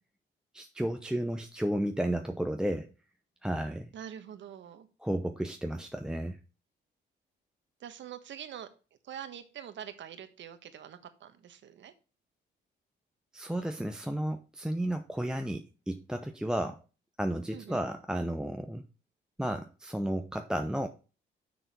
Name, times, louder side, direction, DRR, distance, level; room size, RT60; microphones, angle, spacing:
voice 1, 0.5-2.9 3.4-3.9 5.0-6.4 13.3-16.8 17.2-18.8 19.4-20.9, right 1 dB, 5° right, 5 dB, 0.8 m, -33 dB
voice 2, 3.9-4.9 7.8-8.7 9.0-11.9 17.5-17.9, right 9 dB, 70° right, 9 dB, 1.4 m, -45 dB
7.0 x 6.3 x 5.3 m, 0.34 s
cardioid pair, 90°, 20 cm